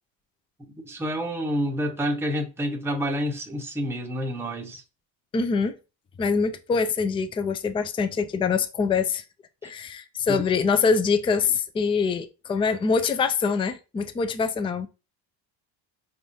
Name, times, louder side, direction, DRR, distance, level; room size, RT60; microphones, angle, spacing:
voice 1, 0.6-4.8 9.6-9.7 10.3-10.4, equal, 5° right, 0.7 m, -29 dB
voice 2, 5.3-5.7 6.2-9.2 9.6-14.9, left 5 dB, 10° left, 0.3 m, -24 dB
4.3 x 3.5 x 2.6 m
supercardioid pair, 95°, 49 cm